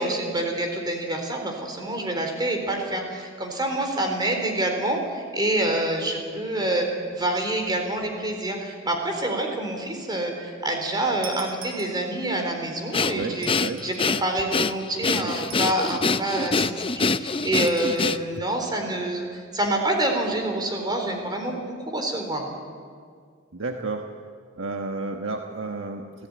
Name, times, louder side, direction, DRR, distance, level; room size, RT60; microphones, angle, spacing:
voice 1, 0.0-13.5 13.8-22.5, right 1 dB, 20° right, 3 dB, 4.1 m, -27 dB
sound 1, 11.2-12.4 13.3-14.2 15.4-16.2 17.7-18.1, right 4 dB, 45° right, 3.5 m, -43 dB
Breathing, 12.9-18.5, left 4 dB, 25° left, 0.6 m, -25 dB
voice 2, 13.1-13.8 15.2-15.3 23.5-24.1 24.6-26.1, right 3 dB, 65° right, 4 dB, 1.4 m, -31 dB
28.0 x 16.5 x 9.8 m, 2.1 s
head